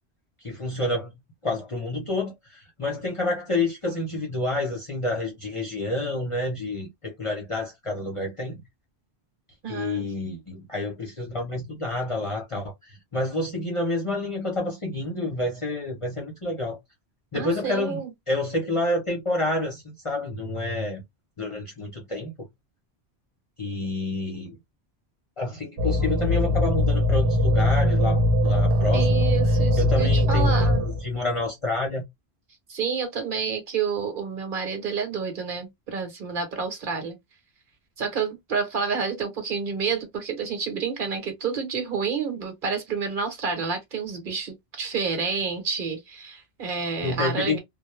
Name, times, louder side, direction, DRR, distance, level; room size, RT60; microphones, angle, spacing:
voice 1, 0.4-1.1 1.4-8.6 9.7-16.8 17.3-18.0 18.3-21.0 21.4-22.3 23.6-24.6 25.4-29.1 29.8-32.0 47.0-47.6, left 2 dB, 35° left, 0.6 m, -29 dB
voice 2, 9.6-10.1 17.3-18.1 28.9-30.8 32.7-37.1 38.0-47.6, right 5 dB, 55° right, 1.1 m, -29 dB
sound 1, 25.8-31.2, left 1 dB, 90° right, 0.9 m, -21 dB
2.2 x 2.0 x 2.9 m
omnidirectional pair, 1.1 m